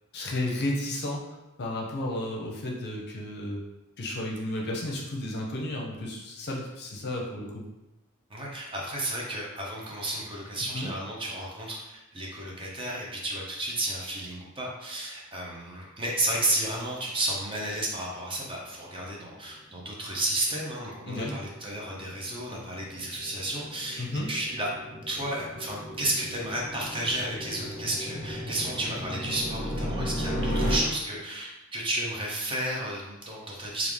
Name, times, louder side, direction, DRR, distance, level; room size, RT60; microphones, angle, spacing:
voice 1, 0.1-1.2 1.6-3.6 4.0-7.6 10.7-10.9 21.1-21.4 24.0-24.3, left 1 dB, 50° left, -1 dB, 0.6 m, -32 dB
voice 2, 8.3-24.7 25.1-33.9, right 1 dB, 25° right, -3 dB, 0.6 m, -32 dB
sound 1, 19.6-30.8, equal, 85° right, 1.1 m, -35 dB
3.3 x 2.4 x 3.5 m, 0.96 s
head